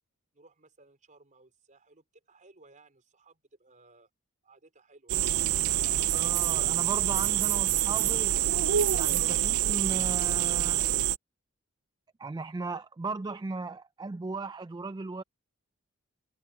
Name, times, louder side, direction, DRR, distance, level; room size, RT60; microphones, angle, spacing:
voice 1, 0.3-4.1 4.4-5.4 7.5-7.6 9.1-9.5, right 3 dB, 35° right, 4.6 m, -58 dB
sound 1, 5.1-11.2, right 12 dB, 80° right, 0.5 m, -26 dB
voice 2, 6.1-8.3 8.9-10.9 12.2-15.2, right 3 dB, 20° right, 0.3 m, -36 dB
head